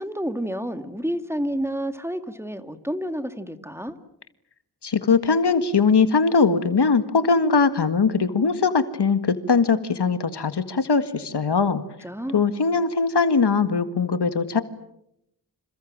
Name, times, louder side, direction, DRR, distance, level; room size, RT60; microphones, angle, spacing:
voice 1, 0.0-4.0 12.0-12.5, equal, 5° right, 8 dB, 2.2 m, -29 dB
voice 2, 4.8-11.8 12.3-14.6, left 5 dB, 75° left, 10 dB, 1.9 m, -21 dB
28.0 x 27.5 x 7.5 m, 0.78 s
cardioid pair, 55°, 40 cm